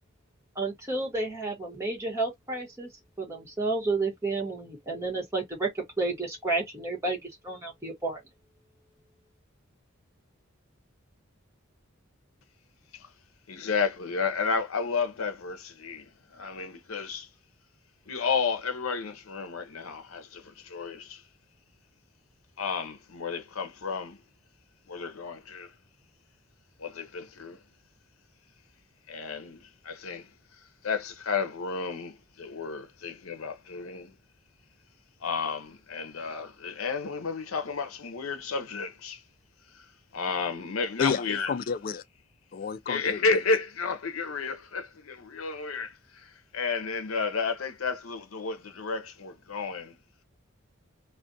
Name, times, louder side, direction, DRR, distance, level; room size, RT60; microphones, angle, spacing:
voice 1, 0.5-2.9 3.2-8.2, right 3 dB, 15° right, 1.2 m, -31 dB
voice 2, 13.5-17.3 18.1-21.2 22.6-24.2 24.9-25.7 26.8-27.6 29.1-30.3 30.8-34.1 35.2-39.2 40.1-41.5 42.9-50.0, left 5 dB, 80° left, 0.6 m, -32 dB
voice 3, 41.0-42.0 42.5-43.2, left 6 dB, 45° left, 0.3 m, -30 dB
2.4 x 2.2 x 2.5 m
head